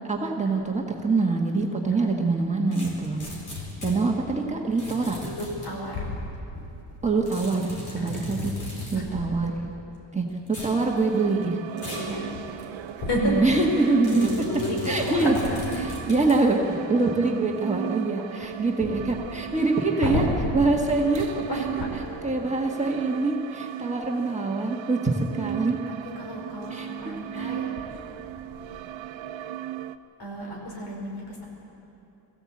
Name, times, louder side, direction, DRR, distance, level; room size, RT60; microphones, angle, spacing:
voice 1, 0.1-3.2 3.8-5.2 7.0-8.5 8.9-9.5 10.1-11.6 13.2-14.3 14.8-15.3 15.8-20.2 20.5-21.6 22.2-25.8 26.7-27.5, right 3 dB, 15° right, -1 dB, 1.6 m, -25 dB
sound 1, 2.7-4.0 4.8-5.7 7.3-9.0 10.5-10.8 11.8-12.1 12.6-12.7 14.0-16.4, left 2 dB, 40° left, 4.6 m, -37 dB
voice 2, 5.3-6.2 8.0-8.3 8.9-9.3 11.9-12.3 13.0-13.4 14.1-15.3 18.8-18.9 20.0-20.5 21.3-21.9 25.9-27.7 30.2-31.5, left 1 dB, 55° left, -1 dB, 5.5 m, -31 dB
sound 2, 10.8-30.0, right 12 dB, 75° right, 0.8 m, -37 dB
21.5 x 15.5 x 8.6 m, 2.9 s
wide cardioid pair, 160°, 46 cm